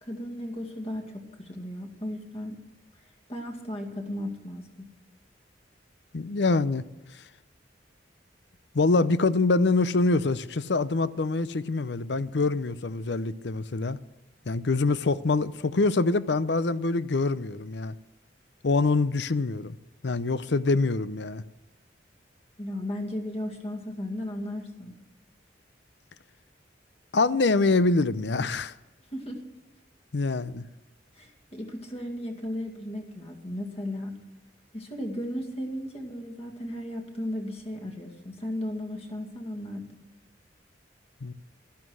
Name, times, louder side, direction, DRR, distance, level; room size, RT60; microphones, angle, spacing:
voice 1, 0.0-2.6 3.3-4.7 22.6-24.9 29.1-29.4 31.2-34.1 34.7-39.9, left 1 dB, 35° left, 2.1 m, -35 dB
voice 2, 6.1-6.9 8.7-14.0 14.5-17.9 18.6-19.8 20.0-21.4 27.1-28.7 30.1-30.6 41.2-41.3, left 3 dB, 70° left, 0.6 m, -25 dB
13.0 x 11.5 x 6.3 m
head